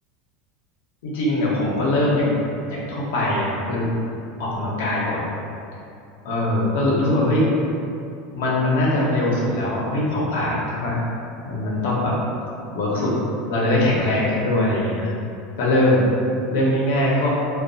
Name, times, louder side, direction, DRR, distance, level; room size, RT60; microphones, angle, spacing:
voice 1, 1.0-2.3 2.7-3.9 4.4-5.2 6.2-7.5 8.3-11.0 11.4-12.1 12.7-13.1 13.5-15.1 15.6-16.1 16.5-17.3, left 1 dB, 75° left, -4 dB, 0.6 m, -21 dB
2.3 x 2.2 x 2.6 m, 2.6 s
supercardioid pair, 165°, 0 cm